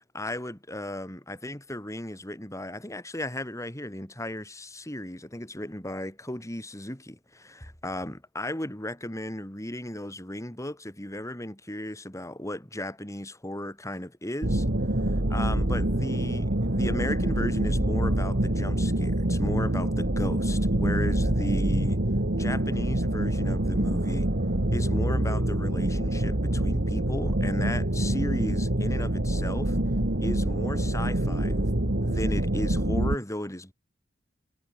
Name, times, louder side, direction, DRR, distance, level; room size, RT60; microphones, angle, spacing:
voice 1, 0.1-14.6 15.0-22.0 22.3-24.3 24.7-29.8 30.2-31.7 32.0-33.7, left 1 dB, 15° left, 4.3 m, -35 dB
sound 1, 14.4-33.2, right 1 dB, 60° right, 2.3 m, -26 dB
head